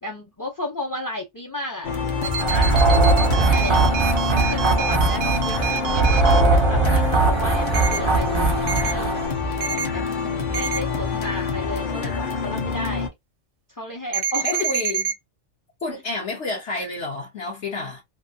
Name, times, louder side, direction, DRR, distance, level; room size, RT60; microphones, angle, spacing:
voice 1, 0.0-9.2 9.9-13.1 13.7-14.7, left 2 dB, 25° left, 0.4 m, -33 dB
sound 1, 1.8-13.1, left 5 dB, 45° left, 0.8 m, -27 dB
sound 2, 2.2-6.4 7.7-8.0 8.7-8.9 9.6-9.9 10.5-10.8 14.1-15.1, right 7 dB, 85° right, 1.0 m, -27 dB
sound 3, 2.4-9.3, right 3 dB, 35° right, 0.5 m, -20 dB
voice 2, 14.4-15.0 15.8-18.0, left 2 dB, 65° left, 1.2 m, -29 dB
2.8 x 2.5 x 2.6 m
omnidirectional pair, 1.3 m